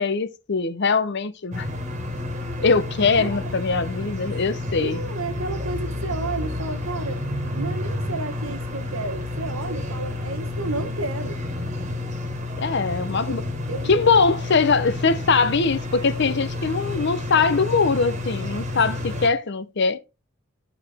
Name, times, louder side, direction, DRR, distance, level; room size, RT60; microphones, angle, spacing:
voice 1, 0.0-1.7 2.6-5.0 12.6-13.4 13.9-20.0, left 4 dB, 60° left, 0.7 m, -22 dB
sound 1, 1.5-19.3, left 2 dB, 35° right, 1.6 m, -30 dB
voice 2, 3.2-3.5 4.8-7.2 7.5-11.4 13.1-13.4 13.7-13.9, right 3 dB, 85° right, 1.4 m, -32 dB
12.0 x 4.8 x 3.5 m
head